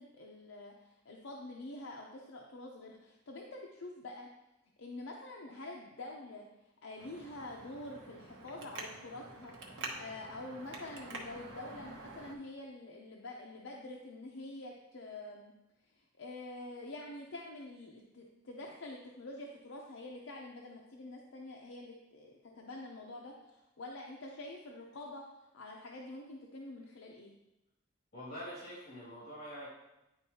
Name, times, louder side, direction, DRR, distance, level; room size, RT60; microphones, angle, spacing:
voice 1, 0.0-4.3 4.8-9.5 10.0-15.5 15.8-27.3, left 2 dB, 80° left, -1 dB, 0.6 m, -47 dB
Traffic noise roadway noise, 7.0-12.3, right 2 dB, 80° right, 1.0 m, -47 dB
voice 2, 28.1-29.7, equal, 55° left, -8 dB, 2.4 m, -45 dB
9.7 x 4.5 x 2.8 m, 0.95 s
head